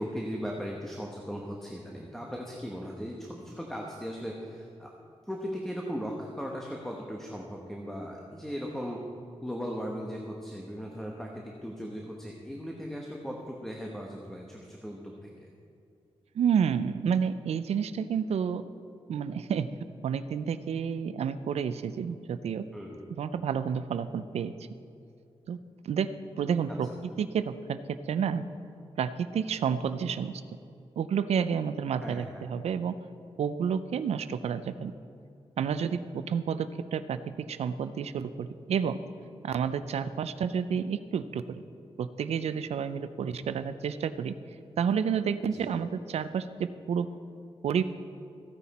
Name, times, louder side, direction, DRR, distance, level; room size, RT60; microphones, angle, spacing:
voice 1, 0.0-4.9 5.3-9.0 9.4-15.3 22.7-23.0 26.7-26.8 32.0-32.4 45.5-45.7, equal, 5° left, -1 dB, 1.1 m, -38 dB
voice 2, 16.3-18.6 19.1-19.7 20.0-22.6 23.2-24.5 25.5-25.6 25.8-26.1 26.4-26.9 27.2-28.4 29.0-30.4 31.0-32.9 33.4-34.9 35.6-39.0 39.4-41.6 42.0-44.4 44.8-47.1 47.6-47.8, right 7 dB, 85° right, 12 dB, 0.5 m, -30 dB
15.0 x 9.8 x 4.2 m, 2.5 s
wide cardioid pair, 120°, 11 cm